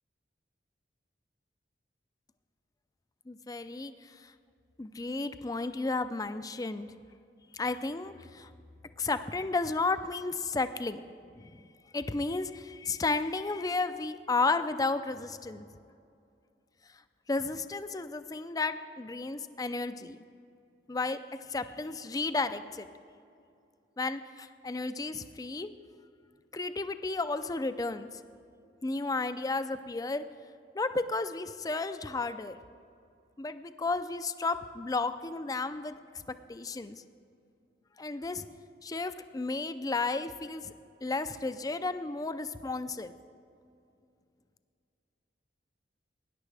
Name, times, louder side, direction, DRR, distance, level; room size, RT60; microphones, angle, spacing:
voice 1, 3.3-4.3 4.8-6.9 7.5-8.5 9.0-11.0 11.4-11.5 11.9-15.7 17.3-20.2 20.9-21.2 21.5-22.9 24.0-25.7 26.5-28.1 28.8-30.2 30.8-32.6 33.4-36.2 36.5-37.0 38.0-38.5 38.8-40.7 41.0-43.1, left 3 dB, 20° left, 11 dB, 0.4 m, -33 dB
20.0 x 10.0 x 3.4 m, 2.5 s
head